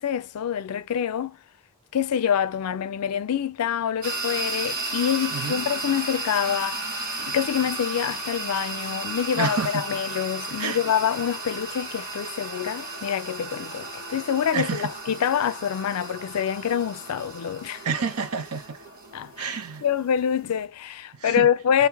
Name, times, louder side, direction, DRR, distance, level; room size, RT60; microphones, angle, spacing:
voice 1, 0.0-1.4 1.9-17.8 19.1-19.5 19.8-21.9, left 8 dB, 85° left, 0.4 m, -26 dB
sound 1, 4.0-20.6, right 2 dB, 40° right, 1.4 m, -34 dB
voice 2, 9.3-9.8 10.6-10.8 14.5-14.9 17.8-18.8 19.4-19.8 21.1-21.5, right 5 dB, 85° right, 0.8 m, -29 dB
3.8 x 2.8 x 2.8 m
head